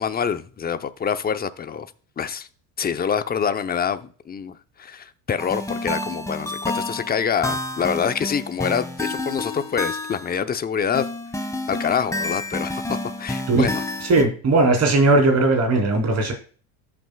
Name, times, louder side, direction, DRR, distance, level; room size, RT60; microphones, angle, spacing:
voice 1, 0.0-1.9 2.2-2.5 2.8-11.1 11.7-13.8, left 7 dB, 25° left, 0.8 m, -26 dB
sound 1, 5.4-10.4 10.9-14.2, left 2 dB, 10° left, 1.5 m, -29 dB
voice 2, 14.0-16.3, right 2 dB, 40° right, 3.6 m, -18 dB
13.5 x 6.2 x 2.3 m
supercardioid pair, 100°, 39 cm